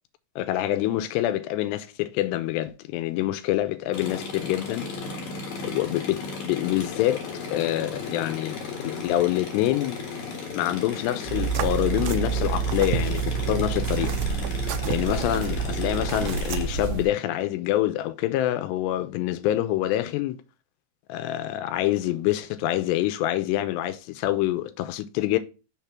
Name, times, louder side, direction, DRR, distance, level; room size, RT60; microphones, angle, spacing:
voice 1, 0.4-4.9 5.6-7.2 7.5-10.0 10.5-14.1 14.9-20.4 21.1-25.4, left 14 dB, 85° left, 2.5 m, -26 dB
sound 1, 3.9-16.6, left 4 dB, 60° left, 2.2 m, -35 dB
sound 2, 11.2-17.1, right 7 dB, 90° right, 2.1 m, -28 dB
6.5 x 3.5 x 5.8 m
omnidirectional pair, 5.1 m